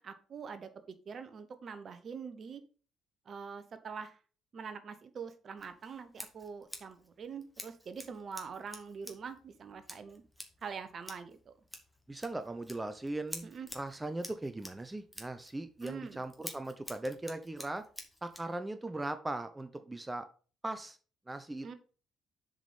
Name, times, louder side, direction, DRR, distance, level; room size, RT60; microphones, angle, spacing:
voice 1, 0.0-2.6 3.3-4.2 4.5-10.2 10.6-11.5 13.4-13.7 15.8-16.2 21.6-21.7, right 6 dB, 45° right, 1.1 m, -44 dB
Scissors, 5.6-18.5, equal, ahead, 2.2 m, -50 dB
voice 2, 12.1-17.8 18.2-20.3 20.6-21.0 21.3-21.7, right 2 dB, 15° right, 0.8 m, -39 dB
7.3 x 5.2 x 5.3 m
figure-of-eight pair, 45°, 0 cm